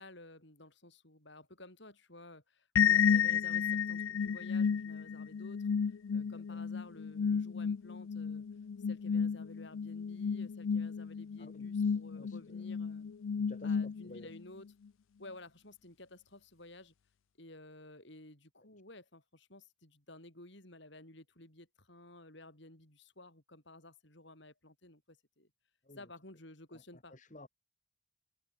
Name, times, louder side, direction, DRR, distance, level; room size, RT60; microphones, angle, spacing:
voice 1, 0.0-8.4 8.9-13.1 13.6-14.7 15.2-16.9 17.4-25.5 26.0-27.1, left 2 dB, 55° left, 5.4 m, -54 dB
sound 1, 2.8-14.4, left 7 dB, 70° left, 0.4 m, -32 dB
voice 2, 6.2-6.6 11.4-12.7 13.5-13.8 14.0-14.3 25.8-26.0 26.7-26.8 27.1-27.5, left 1 dB, 35° left, 2.1 m, -54 dB
head